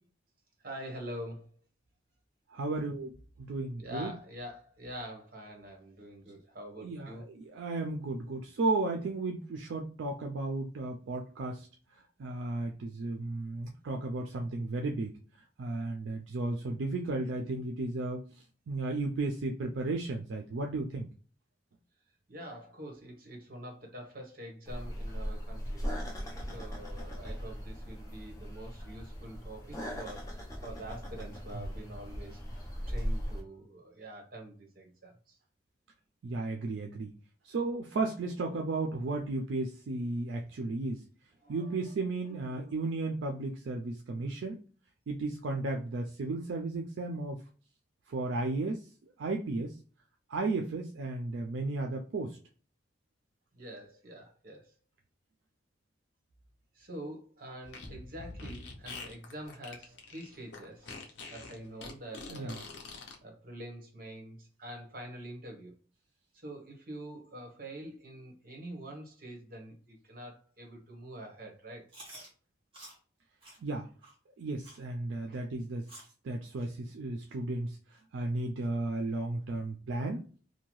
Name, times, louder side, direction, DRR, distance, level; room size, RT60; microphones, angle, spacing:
voice 1, 0.6-1.6 3.8-7.3 22.3-35.4 41.4-42.8 53.5-54.8 56.7-62.7 63.2-65.8 66.3-71.9 75.1-75.4, right 1 dB, 50° right, 2 dB, 0.9 m, -46 dB
voice 2, 2.5-4.1 6.8-11.7 12.2-15.2 15.6-18.2 18.7-21.1 36.2-37.1 37.4-41.1 41.5-44.6 45.1-47.4 48.1-49.7 50.3-52.4 62.3-62.6 73.6-73.9 74.4-75.9 76.2-77.8 78.1-80.3, right 2 dB, 75° right, 2 dB, 0.4 m, -34 dB
sound 1, 24.7-33.4, equal, 15° left, 0.6 m, -38 dB
Fart, 57.6-63.2, left 3 dB, 70° left, 0.6 m, -45 dB
Chewing mastication, 71.9-72.3 72.7-73.0 73.4-73.6 74.0-74.1 74.6-74.8 75.3-75.4 75.9-76.1 76.6-76.7 77.3-77.4 77.9-78.0 78.6-78.7, right 1 dB, 25° right, 1.2 m, -50 dB
2.7 x 2.2 x 3.0 m, 0.39 s
head